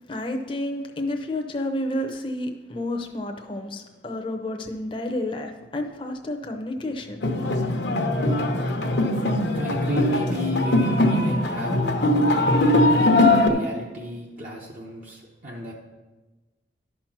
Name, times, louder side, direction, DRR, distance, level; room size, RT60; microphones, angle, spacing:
voice 1, 0.1-7.2, left 1 dB, 30° left, 3 dB, 0.7 m, -30 dB
sound 1, 7.2-13.5, left 1 dB, 75° left, 1.0 m, -21 dB
voice 2, 9.5-11.9 12.2-12.5 13.0-15.7, left 1 dB, 45° right, -4 dB, 1.0 m, -33 dB
11.5 x 4.5 x 5.9 m, 1.2 s
head